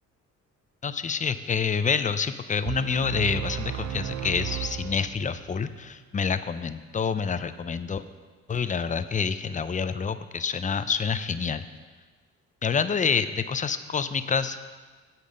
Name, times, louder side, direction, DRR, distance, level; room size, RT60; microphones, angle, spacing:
voice 1, 0.8-8.0 8.5-11.6 12.6-14.6, left 6 dB, 25° left, 12 dB, 0.5 m, -27 dB
sound 1, 2.6-5.6, right 11 dB, 65° right, 0.7 m, -34 dB
8.5 x 8.2 x 5.4 m, 1.4 s
cardioid pair, 90°, 30 cm